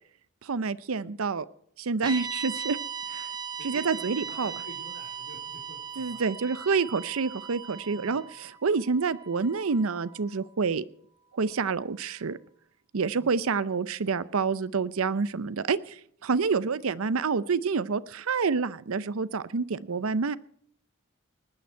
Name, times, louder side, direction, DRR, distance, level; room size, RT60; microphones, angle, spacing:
voice 1, 0.4-1.5 1.8-2.8 3.1-3.3 3.6-4.5 6.0-10.8 11.3-12.4 12.9-20.4, right 5 dB, 85° right, 17 dB, 0.6 m, -28 dB
sound 1, 2.0-10.3, right 6 dB, 20° right, 2.5 m, -39 dB
voice 2, 3.5-6.2 7.9-8.2 13.2-13.3 19.9-20.0, equal, 80° left, -3 dB, 3.4 m, -48 dB
20.0 x 9.4 x 4.5 m, 0.65 s
head